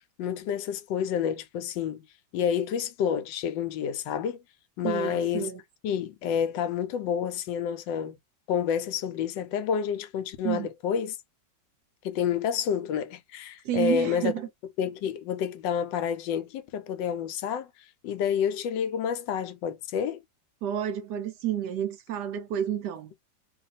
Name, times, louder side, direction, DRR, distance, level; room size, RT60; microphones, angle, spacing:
voice 1, 0.2-2.0 2.3-4.4 4.8-5.5 5.8-8.2 8.5-11.2 12.0-14.3 14.8-17.7 18.0-20.2, left 8 dB, 80° left, 1.2 m, -29 dB
voice 2, 4.8-5.6 10.4-10.7 13.6-14.5 20.6-23.1, right 10 dB, 75° right, 1.0 m, -30 dB
2.8 x 2.5 x 4.0 m
omnidirectional pair, 2.0 m